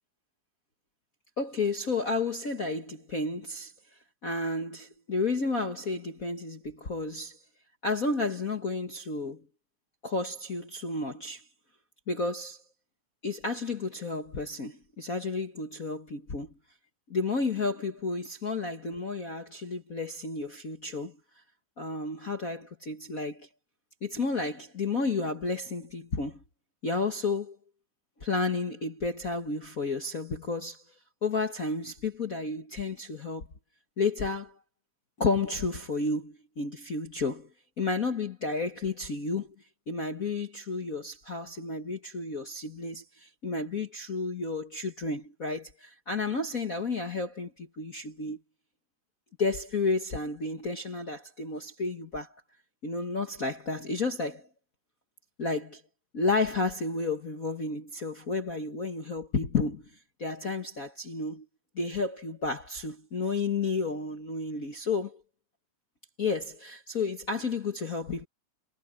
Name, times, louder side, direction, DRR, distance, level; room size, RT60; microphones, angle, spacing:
voice 1, 1.4-3.7 4.2-7.4 7.8-9.4 10.0-11.4 12.1-12.6 13.2-16.5 17.1-21.2 21.8-23.5 24.0-26.4 26.8-27.6 28.2-30.8 31.2-33.5 34.0-34.5 35.2-37.5 37.8-39.5 39.9-48.4 49.4-52.3 52.8-54.5 55.4-55.8 56.1-59.8 60.2-61.4 61.7-65.2 66.2-68.3, left 3 dB, 40° left, 1.3 m, -31 dB
omnidirectional pair, 3.5 m